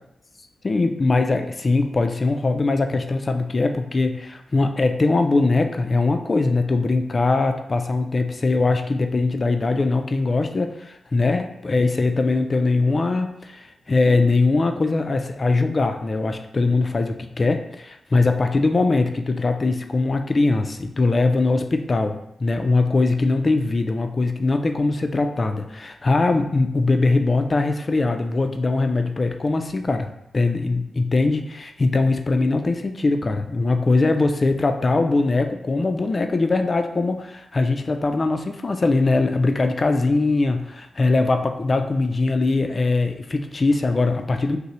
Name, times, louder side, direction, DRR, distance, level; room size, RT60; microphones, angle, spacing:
voice 1, 0.6-44.6, left 3 dB, 35° left, 6 dB, 0.3 m, -21 dB
5.4 x 2.0 x 2.9 m, 0.79 s
cardioid pair, 90°, 0 cm